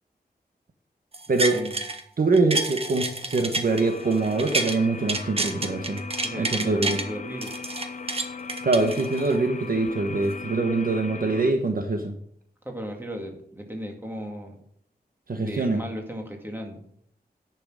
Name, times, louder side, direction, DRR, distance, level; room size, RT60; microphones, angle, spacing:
sound 1, 1.1-2.0 2.3-4.8 5.1-7.0 7.4-9.4 9.9-10.0, right 2 dB, 35° right, 1.1 m, -29 dB
voice 1, 1.5-1.8 6.2-7.6 12.6-14.6 15.3-16.8, equal, 10° right, 1 dB, 2.2 m, -35 dB
voice 2, 2.2-6.0 6.3-7.0 8.6-12.1 15.3-15.8, right 3 dB, 60° right, 5 dB, 1.1 m, -24 dB
sound 2, 3.7-11.5, left 5 dB, 50° left, 0.5 m, -38 dB
10.5 x 6.1 x 6.3 m, 0.67 s
wide cardioid pair, 105°, 17 cm